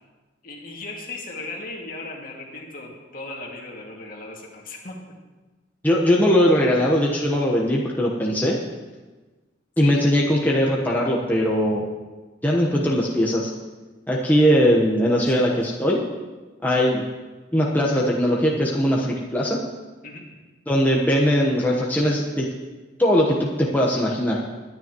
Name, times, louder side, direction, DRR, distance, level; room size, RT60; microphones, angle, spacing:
voice 1, 0.4-5.0 9.8-10.0 15.2-15.6 20.0-20.3, left 2 dB, 50° left, -1 dB, 2.3 m, -37 dB
voice 2, 5.8-8.6 9.8-11.8 12.4-13.5 14.1-16.0 16.6-17.0 17.5-19.6 20.7-22.5 23.0-24.4, equal, 10° left, -3 dB, 1.1 m, -20 dB
21.5 x 10.0 x 3.1 m, 1.2 s
head